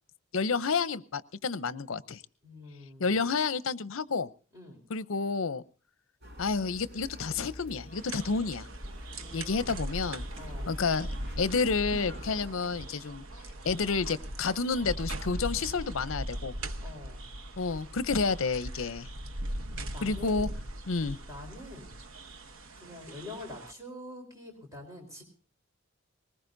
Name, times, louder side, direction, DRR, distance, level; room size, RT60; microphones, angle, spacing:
voice 1, 0.3-2.2 3.0-4.3 4.9-5.6 6.4-8.7 9.3-10.2 10.7-11.1 11.4-13.2 13.6-16.5 17.6-19.1 20.0-20.5 20.9-21.2, left 4 dB, 75° left, 15 dB, 0.7 m, -30 dB
voice 2, 2.4-3.1 4.5-4.8 9.0-9.8 10.4-10.7 16.8-17.2 19.9-20.6 21.2-22.0 22.8-25.2, left 2 dB, 15° right, 1 dB, 4.2 m, -45 dB
sound 1, 6.2-12.5, left 1 dB, 50° right, 5.5 m, -47 dB
sound 2, 7.9-23.7, right 1 dB, 80° right, 1.1 m, -40 dB
21.0 x 19.0 x 2.6 m, 0.38 s
head